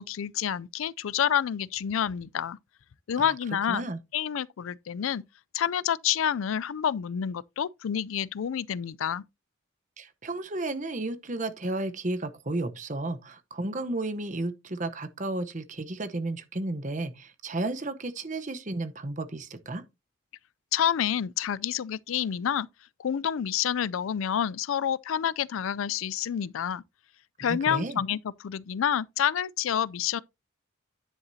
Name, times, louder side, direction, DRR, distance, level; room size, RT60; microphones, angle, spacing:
voice 1, 0.0-2.6 3.1-3.9 4.1-5.2 5.5-9.2 20.7-22.7 23.0-26.8 27.4-30.2, left 9 dB, 85° left, 0.4 m, -28 dB
voice 2, 3.7-4.0 10.0-19.8 27.4-28.0, right 2 dB, 35° right, 0.9 m, -33 dB
9.9 x 7.8 x 2.7 m
head